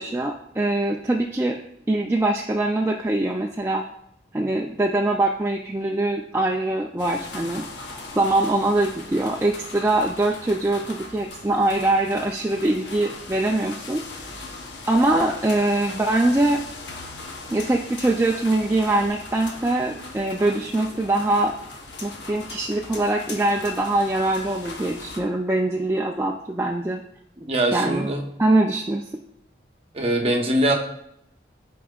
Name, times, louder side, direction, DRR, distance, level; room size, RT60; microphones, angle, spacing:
voice 1, 0.0-1.6 1.9-3.8 4.3-7.6 8.2-14.0 14.9-16.6 17.5-21.5 22.0-27.0 27.7-28.1 28.4-29.0, right 2 dB, 15° right, 1 dB, 0.3 m, -23 dB
sound 1, 7.0-25.2, left 3 dB, 70° left, 1.0 m, -39 dB
voice 2, 27.4-28.2 29.9-30.7, right 1 dB, 30° right, 2 dB, 0.9 m, -22 dB
12.0 x 4.6 x 2.4 m, 0.76 s
head